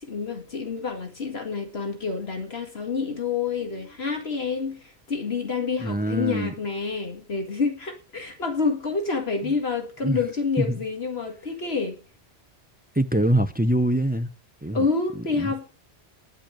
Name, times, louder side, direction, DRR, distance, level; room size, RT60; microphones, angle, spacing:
voice 1, 0.0-12.0 14.7-15.7, left 4 dB, 65° left, 2.2 m, -28 dB
voice 2, 5.8-6.5 9.4-9.5 10.0-10.2 10.6-10.8 12.9-14.3 14.6-14.9 15.1-15.5, right 1 dB, 15° right, 0.3 m, -24 dB
10.5 x 8.8 x 6.4 m
omnidirectional pair, 1.1 m